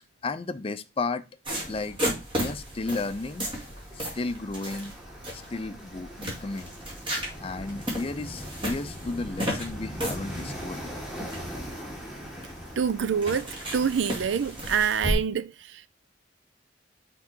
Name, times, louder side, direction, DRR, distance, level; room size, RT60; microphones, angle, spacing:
voice 1, 0.2-1.3 1.7-2.0 2.4-3.5 3.9-4.9 5.3-6.7 7.4-11.0, left 3 dB, 30° left, 0.5 m, -33 dB
sound 1, 1.5-15.1, equal, 30° right, 2.1 m, -35 dB
sound 2, 2.6-14.8, equal, 5° right, 1.7 m, -42 dB
voice 2, 12.8-15.9, right 7 dB, 80° right, 0.4 m, -26 dB
5.9 x 3.8 x 4.4 m
head